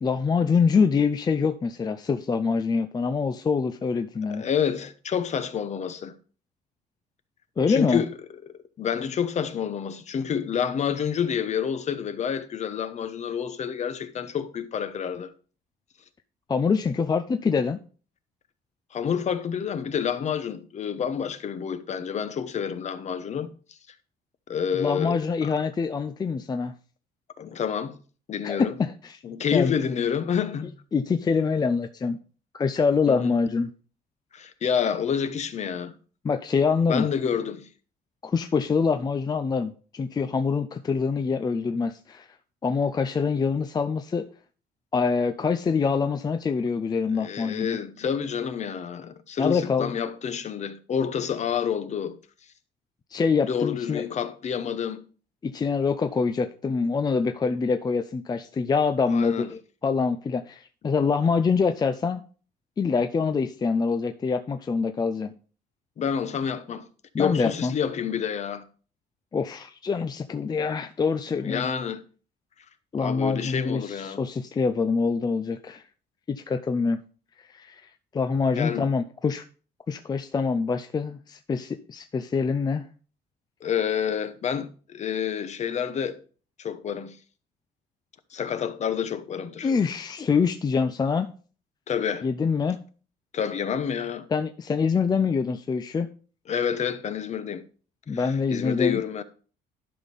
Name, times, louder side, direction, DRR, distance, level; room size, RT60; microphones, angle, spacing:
voice 1, 0.0-4.5 7.6-8.0 16.5-17.8 24.8-26.7 28.4-29.2 29.5-29.7 30.9-32.2 32.5-33.7 36.2-37.1 38.2-42.3 42.6-44.3 44.9-47.8 49.4-49.9 53.1-54.0 55.4-62.2 62.8-65.3 67.1-67.7 69.3-71.7 72.9-75.8 76.3-77.0 77.4-79.4 79.9-82.9 89.6-91.3 92.2-92.8 94.3-96.1 98.1-99.0, left 5 dB, 25° left, 0.5 m, -25 dB
voice 2, 4.3-6.1 7.7-8.1 8.5-15.3 18.9-23.8 24.5-25.5 27.4-28.0 28.3-28.7 29.2-30.7 33.1-33.3 34.3-36.0 36.9-37.7 47.1-52.2 53.5-55.0 59.1-59.5 66.0-66.9 67.2-68.6 71.3-72.0 73.0-74.2 78.5-78.9 83.6-86.2 86.6-87.2 88.3-89.7 91.9-92.3 93.3-94.3 96.5-97.6 98.1-99.2, left 7 dB, 45° left, 0.9 m, -28 dB
11.5 x 5.3 x 4.0 m
cardioid pair, 110°, 17 cm